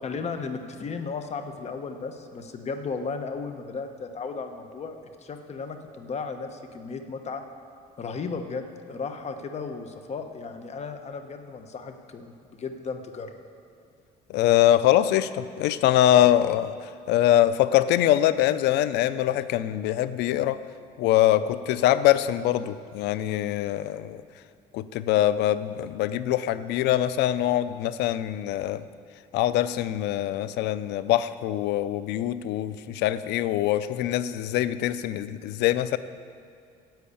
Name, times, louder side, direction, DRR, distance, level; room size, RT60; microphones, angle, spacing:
voice 1, 0.0-7.4 8.0-13.3, left 4 dB, 40° left, 6 dB, 1.1 m, -35 dB
voice 2, 14.3-16.7 17.1-20.6 21.0-24.2 24.7-28.8 29.3-36.0, left 12 dB, 85° left, 14 dB, 0.5 m, -23 dB
10.5 x 7.7 x 8.5 m, 2.3 s
cardioid pair, 110°, 17 cm